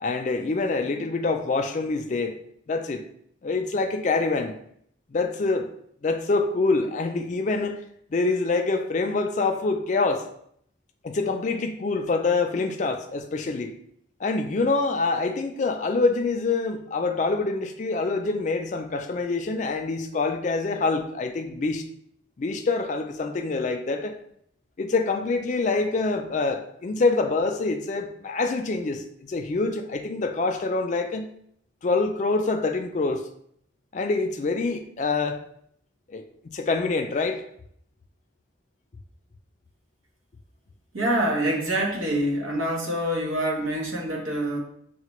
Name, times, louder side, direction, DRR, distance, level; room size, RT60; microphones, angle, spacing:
voice 1, 0.0-2.4 2.7-3.0 3.4-4.6 5.1-5.7 6.0-7.8 8.1-10.3 11.0-13.8 14.2-21.8 22.4-24.2 24.8-31.3 31.8-33.3 33.9-35.4 36.1-37.4, left 3 dB, 40° left, 6 dB, 0.3 m, -26 dB
voice 2, 40.9-44.6, right 1 dB, 85° right, -1 dB, 1.0 m, -26 dB
6.5 x 2.2 x 3.0 m, 0.69 s
head